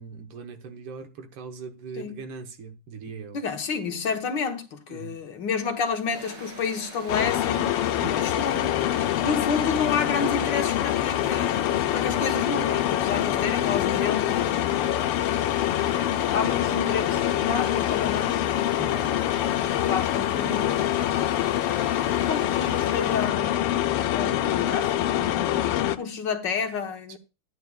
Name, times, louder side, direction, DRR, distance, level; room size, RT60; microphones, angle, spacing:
voice 1, 0.0-3.4 4.9-5.2 18.8-19.1 27.1-27.2, right 5 dB, 80° right, 2.0 m, -40 dB
voice 2, 3.3-8.7 9.2-15.0 15.8-18.6 19.8-20.9 22.3-27.2, left 5 dB, 60° left, 1.6 m, -30 dB
sound 1, 6.1-23.3, right 1 dB, 55° right, 3.5 m, -43 dB
sound 2, 7.1-26.0, left 12 dB, 85° left, 1.6 m, -25 dB
14.0 x 9.5 x 2.3 m
omnidirectional pair, 2.4 m